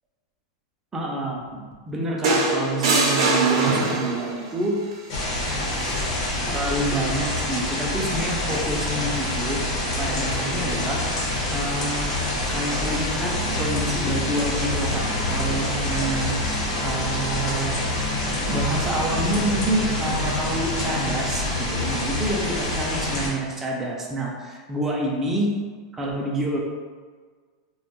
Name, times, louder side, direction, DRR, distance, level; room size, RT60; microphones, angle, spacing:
voice 1, 0.9-4.8 6.5-9.6 10.0-11.0 11.5-12.1 12.5-16.4 16.8-17.8 18.5-25.5 25.9-26.6, right 1 dB, 10° right, -2 dB, 0.3 m, -28 dB
sound 1, 2.2-4.4 5.8-6.0, right 3 dB, 70° right, 0.5 m, -21 dB
sound 2, 5.1-23.3, left 1 dB, 85° left, 0.9 m, -26 dB
sound 3, 13.1-22.1, right 1 dB, 60° left, 0.6 m, -34 dB
2.2 x 2.1 x 2.8 m, 1.5 s
supercardioid pair, 160°, 3 cm